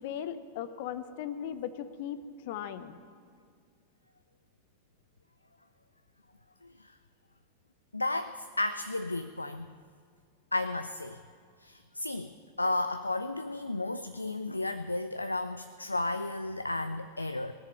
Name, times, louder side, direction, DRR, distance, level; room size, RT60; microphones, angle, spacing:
voice 1, 0.0-3.0, left 9 dB, 50° left, 13 dB, 0.8 m, -38 dB
voice 2, 7.9-9.7 10.5-11.2 11.6-12.3 12.6-17.5, left 2 dB, 85° left, 11 dB, 0.4 m, -33 dB
19.0 x 6.8 x 8.9 m, 2.1 s
figure-of-eight pair, 90°, 0 cm